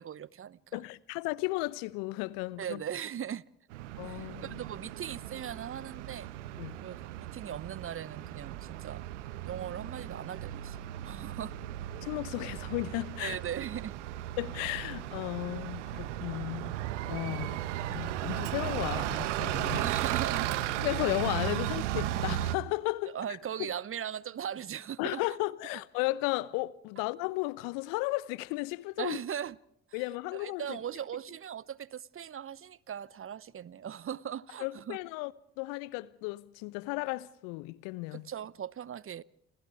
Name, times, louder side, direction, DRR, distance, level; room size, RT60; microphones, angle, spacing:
voice 1, 0.0-0.8 2.6-3.4 4.0-6.3 6.8-9.0 9.5-10.8 11.0-11.6 13.2-13.9 19.7-20.6 23.1-25.2 29.0-29.6 29.9-30.0 30.3-35.0 38.1-39.2, right 9 dB, 35° right, 0.9 m, -39 dB
voice 2, 0.7-2.8 4.0-4.6 6.6-6.8 12.0-13.4 14.4-16.8 17.1-19.9 20.8-23.2 23.6-23.7 25.0-29.2 29.9-30.8 34.6-35.3 35.6-38.3, left 21 dB, 65° left, 1.0 m, -34 dB
Bus, 3.7-22.6, right 13 dB, 75° right, 1.2 m, -36 dB
29.5 x 28.5 x 3.5 m
figure-of-eight pair, 50°, 37 cm